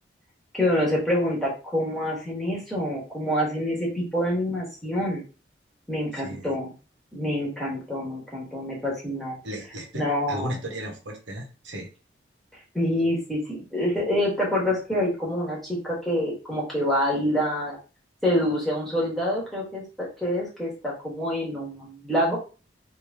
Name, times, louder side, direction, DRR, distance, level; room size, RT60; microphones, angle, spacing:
voice 1, 0.5-5.2 5.9-6.7 7.1-9.4 9.9-10.5 12.7-17.8 18.2-22.4, left 1 dB, ahead, -5 dB, 1.2 m, -26 dB
voice 2, 6.1-6.5 9.4-11.9, equal, 85° right, 2 dB, 0.9 m, -35 dB
3.0 x 2.7 x 3.4 m, 0.35 s
head